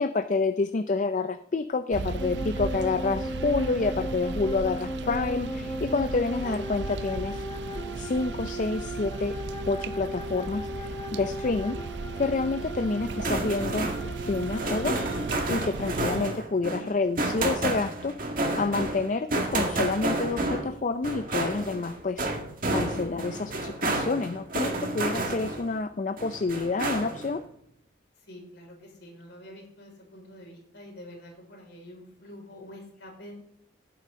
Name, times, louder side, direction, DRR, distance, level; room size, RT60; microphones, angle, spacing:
voice 1, 0.0-7.4 8.0-9.3 9.7-11.8 12.2-13.9 14.3-15.1 15.5-22.3 22.7-27.4, left 3 dB, 40° left, 10 dB, 0.4 m, -28 dB
sound 1, 1.9-16.2, right 4 dB, 65° right, 0.5 m, -36 dB
sound 2, 2.2-15.6, equal, 20° left, 1.0 m, -37 dB
sound 3, 13.0-25.8 26.2-27.4, right 2 dB, 45° right, 1.9 m, -30 dB
voice 2, 28.3-33.3, equal, 60° left, -1 dB, 5.0 m, -47 dB
16.0 x 9.1 x 3.7 m, 0.70 s
head